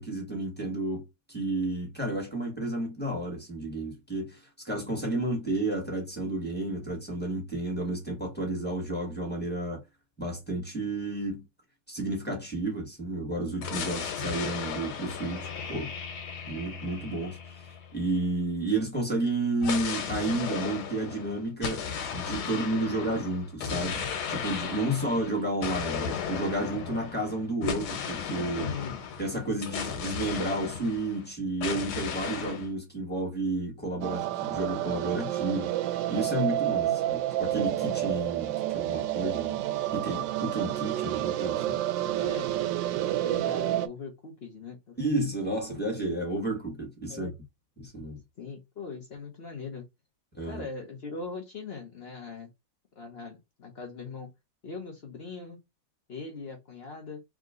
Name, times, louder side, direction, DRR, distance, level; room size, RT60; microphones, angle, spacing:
voice 1, 0.0-9.8 10.2-11.4 11.9-15.9 16.5-21.8 22.1-28.7 29.2-35.7 36.1-39.6 39.9-41.8 45.0-47.3 47.8-48.2 50.3-50.6, right 2 dB, 5° left, 1.4 m, -31 dB
sound 1, 13.6-18.3 19.6-31.3 31.6-32.7, left 7 dB, 85° left, 1.8 m, -35 dB
voice 2, 28.6-29.0 36.8-37.1 42.2-42.5 43.2-45.0 47.1-47.3 48.4-49.8 50.5-52.5 53.0-54.3 54.6-55.6 56.1-57.2, left 4 dB, 65° left, 0.6 m, -40 dB
sound 2, 34.0-43.9, right 13 dB, 75° right, 1.2 m, -29 dB
3.7 x 2.9 x 3.7 m
omnidirectional pair, 2.2 m